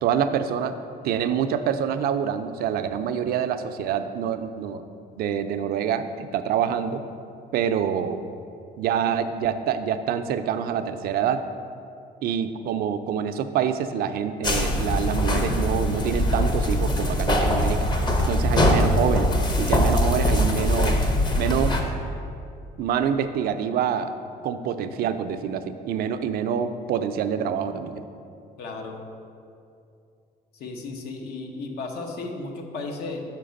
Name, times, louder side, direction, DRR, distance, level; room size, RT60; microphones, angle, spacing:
voice 1, 0.0-0.7 1.0-4.8 5.2-7.0 7.5-8.2 8.8-11.4 12.2-17.9 18.2-19.3 19.6-21.0 21.4-21.9 22.8-24.1 24.4-28.0, right 8 dB, 65° right, 10 dB, 0.4 m, -26 dB
sound 1, 14.4-21.8, left 1 dB, 25° left, 0.7 m, -22 dB
voice 2, 28.6-29.0 30.5-33.2, left 3 dB, 70° left, 3 dB, 0.9 m, -34 dB
5.8 x 4.7 x 5.1 m, 2.5 s
cardioid pair, 110°, 17 cm